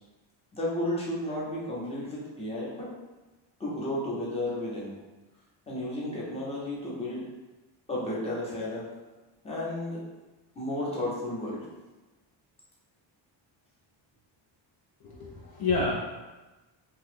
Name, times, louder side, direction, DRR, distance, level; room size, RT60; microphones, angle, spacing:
voice 1, 0.5-2.9 3.6-4.9 5.7-7.2 7.9-8.9 9.4-10.0 10.5-11.7, left 1 dB, 15° left, -6 dB, 0.8 m, -33 dB
voice 2, 15.0-16.0, left 3 dB, 50° left, -4 dB, 0.5 m, -29 dB
2.8 x 2.4 x 3.4 m, 1.1 s
cardioid pair, 140°, 48 cm